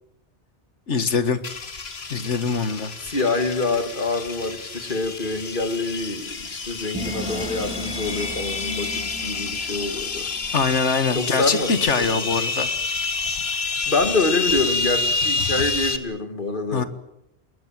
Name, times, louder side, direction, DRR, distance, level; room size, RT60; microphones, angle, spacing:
voice 1, 0.9-1.4 2.1-2.9 10.5-12.7 16.7-16.8, left 5 dB, 85° left, 12 dB, 1.9 m, -23 dB
sound 1, 1.4-16.0, left 4 dB, 60° left, 1.8 m, -28 dB
voice 2, 3.0-10.3 11.1-12.3 13.6-16.9, left 3 dB, 45° left, 8 dB, 2.6 m, -26 dB
sound 2, 6.9-10.9, left 1 dB, 5° right, 3.3 m, -36 dB
29.5 x 20.5 x 7.6 m, 0.80 s
omnidirectional pair, 1.2 m